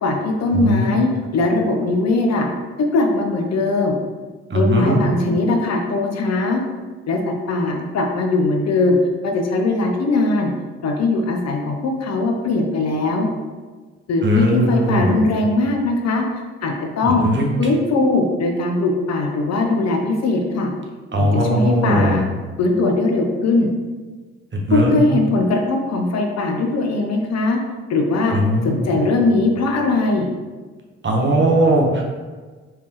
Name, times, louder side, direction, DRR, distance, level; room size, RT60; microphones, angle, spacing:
voice 1, 0.0-2.5 2.8-4.0 4.5-6.6 7.1-9.0 9.2-10.5 10.8-13.3 14.1-16.2 16.6-17.2 17.6-20.7 21.2-22.2 22.6-23.7 24.7-27.6 27.9-28.4 28.6-30.3, left 2 dB, 55° left, 2 dB, 0.7 m, -20 dB
voice 2, 0.5-0.9 4.5-5.0 14.2-15.3 17.0-17.5 21.1-22.3 24.5-25.1 28.3-28.8 31.0-32.0, equal, 35° right, -1 dB, 1.2 m, -18 dB
4.7 x 3.4 x 3.0 m, 1.4 s
hypercardioid pair, 45°, 32 cm